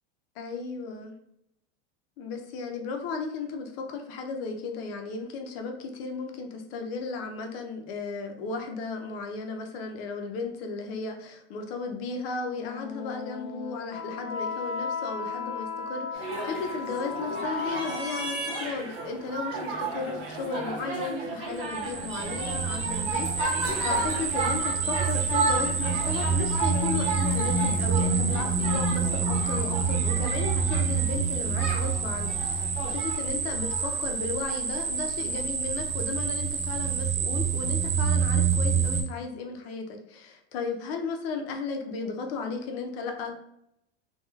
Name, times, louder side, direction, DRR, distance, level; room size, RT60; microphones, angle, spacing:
voice 1, 0.4-1.1 2.2-43.3, left 4 dB, 65° left, 4 dB, 0.6 m, -35 dB
Wind instrument woodwind instrument, 12.5-18.7, left 5 dB, 20° left, 0.3 m, -36 dB
sound 1, 16.1-34.5 35.4-35.5, right 3 dB, 40° right, 1.0 m, -34 dB
sound 2, 21.7-39.0, right 5 dB, 75° right, 0.7 m, -27 dB
2.9 x 2.3 x 2.3 m, 0.78 s
supercardioid pair, 130°, 31 cm